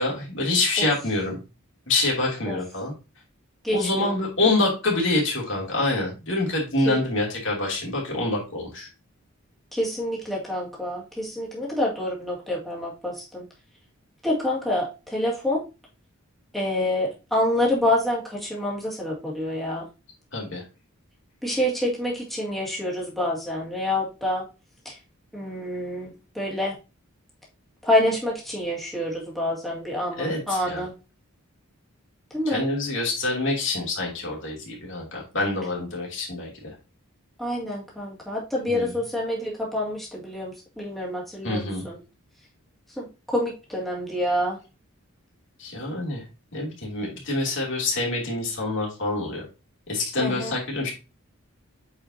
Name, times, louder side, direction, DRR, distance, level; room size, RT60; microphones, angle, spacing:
voice 1, 0.0-1.4 1.9-2.9 3.7-8.9 20.3-20.6 30.2-30.9 32.5-36.7 38.7-38.9 41.4-41.8 45.6-46.2 46.5-49.4 49.9-50.9, left 2 dB, 55° left, -2 dB, 3.1 m, -26 dB
voice 2, 3.6-4.2 6.9-7.0 9.7-13.4 14.2-15.6 16.5-19.9 21.4-24.4 24.8-25.0 25.3-26.8 27.8-30.9 32.3-32.6 37.4-42.0 43.0-44.6 50.2-50.5, left 1 dB, ahead, -4 dB, 2.3 m, -27 dB
8.3 x 4.9 x 2.9 m, 0.29 s
head